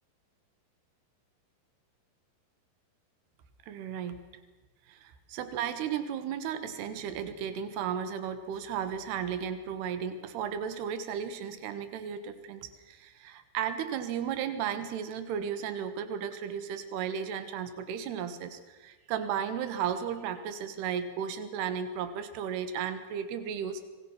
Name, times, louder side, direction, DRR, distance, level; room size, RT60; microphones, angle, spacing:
voice 1, 3.7-4.2 4.9-24.0, right 8 dB, 75° right, 10 dB, 3.3 m, -34 dB
26.0 x 20.5 x 6.0 m, 1.3 s
omnidirectional pair, 4.9 m